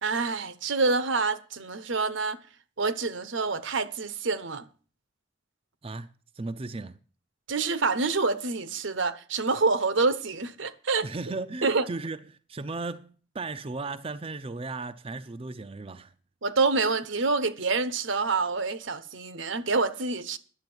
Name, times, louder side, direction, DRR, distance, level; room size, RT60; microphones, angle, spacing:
voice 1, 0.0-2.4 2.8-4.7 7.5-11.1 11.6-11.8 16.4-20.4, right 4 dB, 75° right, 1.0 m, -27 dB
voice 2, 6.4-7.0 11.0-16.1, right 3 dB, 30° right, 0.5 m, -36 dB
10.5 x 7.7 x 7.9 m
head